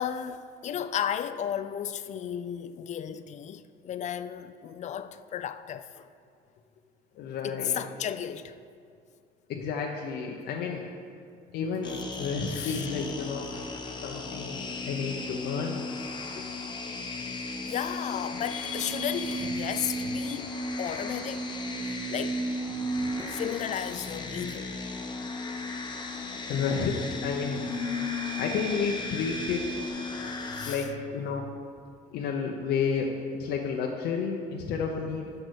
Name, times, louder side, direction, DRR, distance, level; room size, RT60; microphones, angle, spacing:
voice 1, 0.0-6.1 7.4-8.6 12.5-13.0 14.2-14.4 17.7-21.6 22.1-22.4 23.3-24.7 30.2-30.9, left 9 dB, 45° left, 0.4 m, -34 dB
voice 2, 7.2-7.8 9.5-10.8 11.5-13.5 14.0-15.9 16.3-16.4 22.8-23.1 26.5-27.6 28.4-29.6 30.7-31.5 32.1-35.3, left 5 dB, 75° left, 0.7 m, -31 dB
sound 1, 11.8-30.8, left 3 dB, 25° left, 0.9 m, -37 dB
sound 2, 18.6-23.4 27.3-29.9, right 2 dB, 15° right, 0.9 m, -35 dB
6.6 x 5.9 x 6.3 m
cardioid pair, 110°, 17 cm